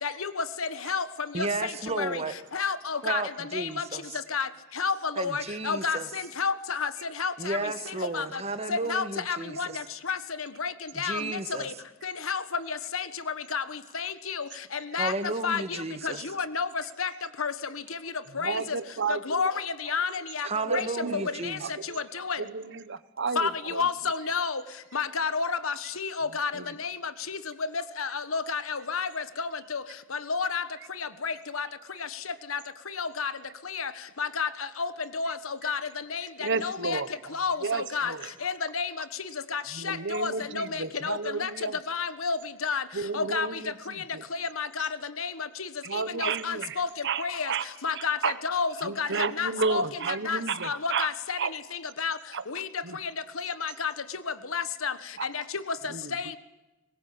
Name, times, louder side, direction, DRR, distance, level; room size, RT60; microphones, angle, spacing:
voice 1, 0.0-1.0 1.4-1.5 2.0-2.2 2.5-3.2 3.5-3.8 4.3-4.5 4.8-6.0 6.4-6.9 7.2-7.6 8.1-8.2 8.7-9.7 10.1-10.2 10.6-10.7 11.0-11.2 12.0-12.4 12.7-13.0 13.5-13.6 13.9-14.4 14.9-15.1 15.4-15.8 16.0-16.7 17.0-17.1 17.4-17.5 18.4-18.6 19.3-19.5 19.9-20.1 20.3-20.5 20.7-20.8 21.1-21.6 22.2-22.4 23.4-24.6 24.9-26.5 26.8-26.9 27.3-27.4 28.0-29.8 30.1-30.6 31.2-31.7 32.5-32.6 33.0-33.3 33.7-33.9 34.2-34.5 34.8-35.4 35.6-35.8 36.1-37.0 37.3-37.6 37.9-38.1 38.4-38.9 39.5-41.5 41.9-42.4 42.6-42.8 43.1-43.5 44.4-44.9 45.2-45.3 45.9-46.9 47.2-47.5 47.8-48.2 48.4-49.1 49.4-49.8 50.3-51.4 52.0-52.2 52.5-52.7 53.4-53.9 54.5-54.9 55.3-55.4 56.1-56.2, left 5 dB, 75° left, 13 dB, 1.4 m, -30 dB
voice 2, 1.3-2.4 3.0-4.2 5.2-6.1 7.4-9.8 10.9-11.7 15.0-16.2 20.4-21.7, right 3 dB, 30° right, 10 dB, 1.7 m, -33 dB
voice 3, 18.4-19.4 20.7-21.2 21.6-22.0 22.4-23.5 26.6-26.7 36.4-37.1 37.6-38.2 39.7-41.7 42.9-43.5 43.9-44.2 45.8-46.7 47.0-47.2 47.5-47.6 48.2-48.3 48.8-51.1 51.4-51.5 52.3-52.4 52.8-53.0 55.9-56.0, right 5 dB, 60° right, 15 dB, 1.2 m, -31 dB
23.0 x 20.0 x 8.6 m, 1.1 s
head